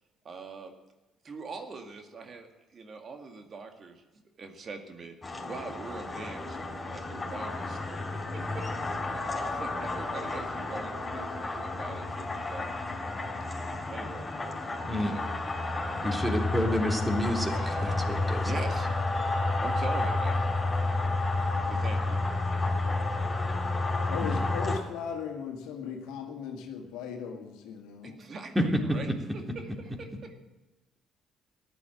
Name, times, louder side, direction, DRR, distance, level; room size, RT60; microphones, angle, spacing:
voice 1, 0.2-0.7 1.2-4.0 4.4-6.6 6.9-8.7 9.1-13.1 13.9-14.3 15.0-15.5 17.5-18.9 19.3-20.4 21.7-22.2 28.0-29.1 29.3-30.4, right 4 dB, 45° right, 5 dB, 2.1 m, -43 dB
sound 1, 5.2-24.8, left 2 dB, 25° left, 4.3 m, -31 dB
voice 2, 16.0-18.5 24.2-24.4 28.5-29.0, equal, 15° right, 2 dB, 3.3 m, -29 dB
voice 3, 24.0-28.2, left 6 dB, 70° left, 3 dB, 1.9 m, -37 dB
14.5 x 11.0 x 7.7 m, 1.1 s
hypercardioid pair, 50°, 0 cm